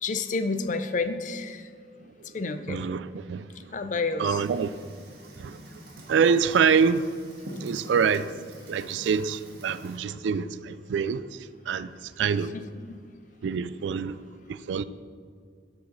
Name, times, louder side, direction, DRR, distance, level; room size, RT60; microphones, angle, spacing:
voice 1, 0.0-1.7 2.2-2.8 3.5-4.4 12.5-13.0, left 3 dB, 45° left, 0.5 m, -30 dB
voice 2, 2.7-3.4 4.2-4.7 5.4-5.6 6.1-7.1 7.6-8.3 8.7-11.2 11.7-11.9 12.2-12.5 13.4-14.2 14.5-14.8, right 6 dB, 85° right, 0.3 m, -25 dB
Fire, 4.4-10.0, right 1 dB, 60° right, 1.6 m, -45 dB
11.5 x 4.8 x 4.0 m
head